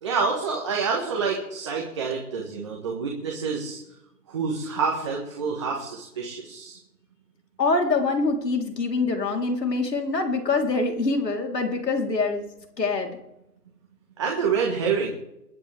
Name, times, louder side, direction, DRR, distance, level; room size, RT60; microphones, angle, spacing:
voice 1, 0.0-3.8 4.3-6.8 14.2-15.1, right 5 dB, 20° right, -1 dB, 1.4 m, -27 dB
voice 2, 7.6-12.5 12.8-13.1, left 3 dB, 85° left, 3 dB, 3.9 m, -24 dB
29.0 x 10.5 x 3.5 m, 0.87 s
hypercardioid pair, 170°, 48 cm